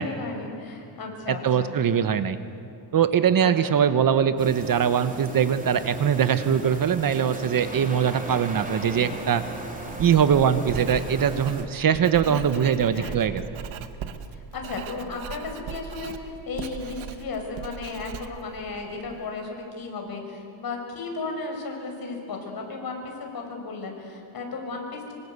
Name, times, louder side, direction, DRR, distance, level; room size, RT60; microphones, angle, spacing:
voice 1, 0.0-1.7 3.4-3.7 12.2-12.3 12.6-13.2 14.3-25.1, left 3 dB, 45° left, 2 dB, 6.3 m, -35 dB
voice 2, 1.3-2.4 2.9-9.4 10.0-13.4, right 8 dB, 45° right, 11 dB, 1.2 m, -22 dB
sound 1, 4.4-11.6, right 1 dB, 15° right, 4.1 m, -37 dB
Writing, 9.9-19.3, right 8 dB, 70° right, 1.7 m, -39 dB
26.5 x 25.0 x 8.2 m, 2.7 s
cardioid pair, 125°, 48 cm